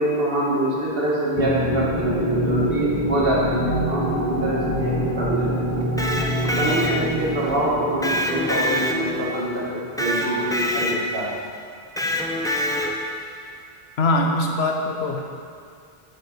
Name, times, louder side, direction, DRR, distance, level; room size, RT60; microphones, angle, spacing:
voice 1, 0.0-5.8 6.4-11.3, right 1 dB, 65° right, -6 dB, 2.1 m, -25 dB
sound 1, 1.4-9.9, right 1 dB, 40° left, 1.2 m, -26 dB
Electric guitar, 5.8-7.3 8.0-9.4 10.0-11.3 12.0-13.2, left 1 dB, 5° left, 0.4 m, -25 dB
voice 2, 14.0-15.2, left 2 dB, 85° left, 2 dB, 1.2 m, -22 dB
7.3 x 6.6 x 6.2 m, 2.3 s
omnidirectional pair, 1.0 m